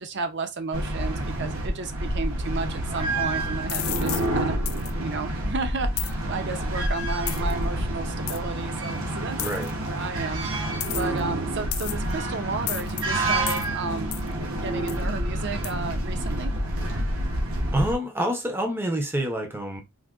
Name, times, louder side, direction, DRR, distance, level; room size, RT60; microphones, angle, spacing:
voice 1, 0.0-4.6 5.0-9.4 9.8-16.5, right 4 dB, 55° right, 0.6 m, -33 dB
sound 1, 0.7-17.9, right 1 dB, 75° right, 0.9 m, -28 dB
sound 2, 3.7-4.3 4.7-4.9 6.0-6.1 7.3-7.5 8.3-8.4 9.4-9.7 10.8-11.2 11.7-12.1 12.7-13.0 13.5-13.7 14.1-14.3 14.9-15.0 15.6-15.7, left 13 dB, 75° left, 0.4 m, -32 dB
voice 2, 9.4-9.7 17.7-19.8, right 1 dB, 10° right, 0.6 m, -27 dB
3.9 x 2.6 x 2.4 m
head